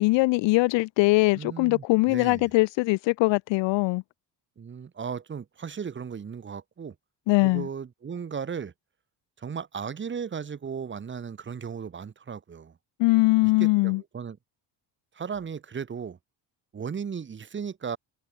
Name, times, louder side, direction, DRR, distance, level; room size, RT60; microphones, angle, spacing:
voice 1, 0.0-4.0 7.3-7.7 13.0-14.0, left 23 dB, 90° left, 0.7 m, -22 dB
voice 2, 1.4-2.5 4.6-7.0 7.4-8.7 9.4-12.7 13.4-14.4 15.1-16.2 16.7-18.0, right 6 dB, 25° right, 3.9 m, -36 dB
cardioid pair, 175°, 43 cm